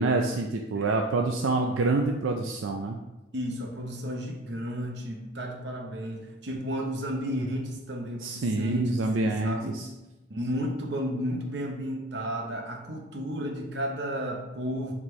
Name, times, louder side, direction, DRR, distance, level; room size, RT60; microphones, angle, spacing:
voice 1, 0.0-3.0 8.2-9.9, right 3 dB, 85° right, 3 dB, 0.4 m, -27 dB
voice 2, 3.3-9.8 10.3-14.9, equal, 60° right, 2 dB, 1.0 m, -33 dB
7.1 x 4.3 x 3.1 m, 1.0 s
head